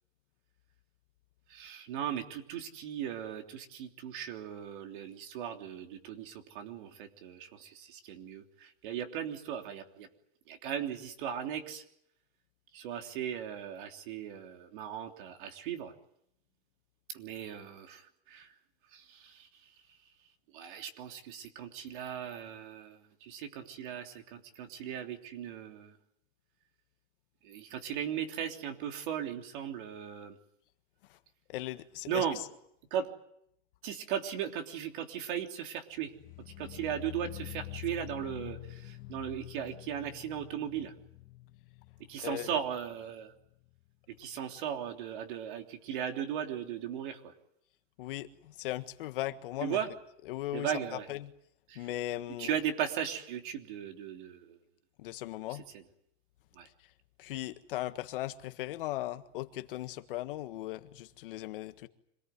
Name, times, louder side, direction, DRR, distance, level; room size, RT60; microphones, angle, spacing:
voice 1, 1.5-10.1 10.5-11.8 12.7-15.9 17.1-18.5 18.9-19.7 20.5-26.0 27.4-30.4 32.1-32.4 32.9-33.1 33.8-36.1 36.6-40.9 42.1-43.3 44.2-47.3 49.6-49.9 50.5-51.1 51.7-51.9 52.4-54.6 55.5-55.8 56.5-56.7, right 9 dB, 55° right, 3.3 m, -37 dB
voice 2, 31.5-32.2 42.2-42.6 48.0-49.8 50.3-51.3 51.7-52.6 55.0-55.6 57.2-61.9, left 15 dB, 60° left, 1.6 m, -38 dB
sound 1, 36.0-43.1 43.3-43.8 44.1-44.2, left 18 dB, 25° left, 1.0 m, -47 dB
26.0 x 19.0 x 9.4 m
supercardioid pair, 160°, 31 cm